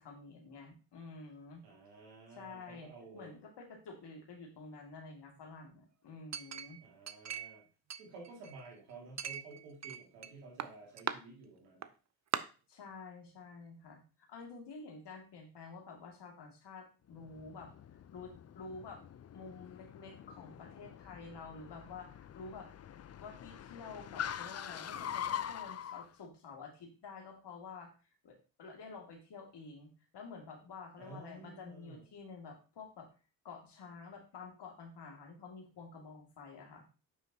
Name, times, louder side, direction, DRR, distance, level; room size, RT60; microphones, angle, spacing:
voice 1, 0.0-1.6 2.3-6.8 12.7-17.7 18.1-19.0 19.3-22.7 23.2-27.9 28.2-29.9 30.1-33.1 33.4-36.8, left 4 dB, 60° left, 2 dB, 2.3 m, -50 dB
voice 2, 1.6-3.3 6.8-7.6 8.0-11.9 31.0-32.0, right 3 dB, 90° right, -1 dB, 2.3 m, -52 dB
Chink clink, 6.3-7.6 7.9-8.7 9.2-10.3 10.6-11.2 11.8-11.9 12.3-12.4, right 8 dB, 35° right, 0.7 m, -39 dB
Car, 17.1-26.1, left 9 dB, 35° left, 0.5 m, -44 dB
9.4 x 5.7 x 2.8 m, 0.34 s
hypercardioid pair, 40°, 45 cm